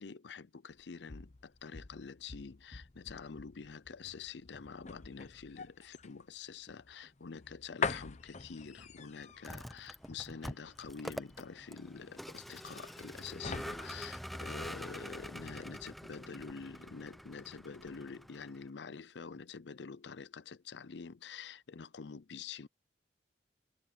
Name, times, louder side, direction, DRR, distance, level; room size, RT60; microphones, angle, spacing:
voice 1, 0.0-22.7, left 5 dB, 75° left, 0.6 m, -47 dB
sound 1, 0.7-15.1 15.4-15.6, left 5 dB, 40° left, 0.9 m, -44 dB
Vehicle, 9.3-18.7, equal, ahead, 0.7 m, -46 dB
head